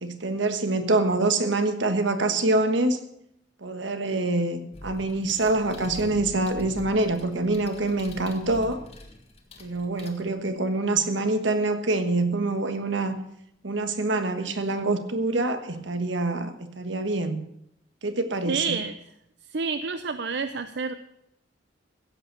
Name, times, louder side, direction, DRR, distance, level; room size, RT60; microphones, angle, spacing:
voice 1, 0.0-3.0 3.6-8.8 9.6-13.2 13.6-17.4 18.0-18.8, right 2 dB, 75° right, 9 dB, 1.4 m, -25 dB
sound 1, 4.7-10.7 13.2-13.3 14.7-14.9 15.3-16.2, left 1 dB, 35° left, 1.5 m, -44 dB
voice 2, 18.5-19.0 19.5-20.9, right 4 dB, 60° right, 10 dB, 0.6 m, -28 dB
15.5 x 8.1 x 6.7 m, 0.78 s
head